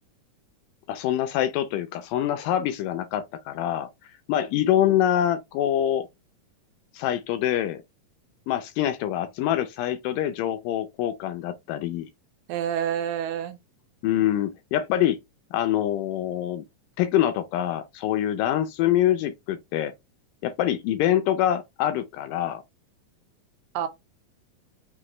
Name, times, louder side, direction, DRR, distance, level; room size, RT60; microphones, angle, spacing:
voice 1, 0.9-3.9 4.3-6.1 6.9-7.8 8.5-12.1 14.0-15.2 15.5-16.6 17.0-19.9 20.4-22.6, left 11 dB, 80° left, 2.0 m, -25 dB
voice 2, 12.5-13.6 23.7-23.9, right 9 dB, 85° right, 2.4 m, -28 dB
5.9 x 2.5 x 3.0 m
omnidirectional pair, 4.1 m